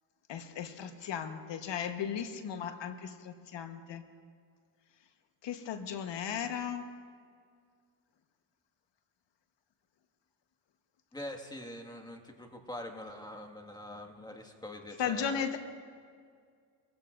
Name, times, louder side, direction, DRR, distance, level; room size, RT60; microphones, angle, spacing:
voice 1, 0.3-4.0 5.4-6.9 15.0-15.6, left 8 dB, 60° left, 8 dB, 1.3 m, -36 dB
voice 2, 11.1-15.4, left 1 dB, 10° left, 3 dB, 1.9 m, -44 dB
23.0 x 16.0 x 2.6 m, 2.1 s
supercardioid pair, 75°, 48 cm